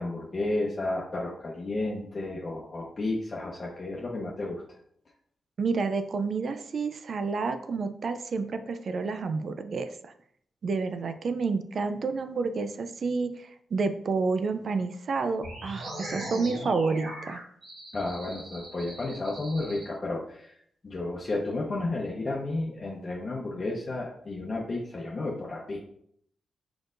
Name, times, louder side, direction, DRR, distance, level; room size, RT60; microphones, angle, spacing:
voice 1, 0.0-4.6 17.9-20.5 20.8-25.8, left 2 dB, 45° left, -3 dB, 0.9 m, -32 dB
voice 2, 5.6-10.1 10.6-17.4, right 4 dB, 65° right, 9 dB, 0.4 m, -29 dB
sound 1, 15.4-19.8, right 1 dB, 85° right, 1.3 m, -39 dB
4.6 x 4.2 x 2.6 m, 0.67 s
cardioid pair, 55°, 0 cm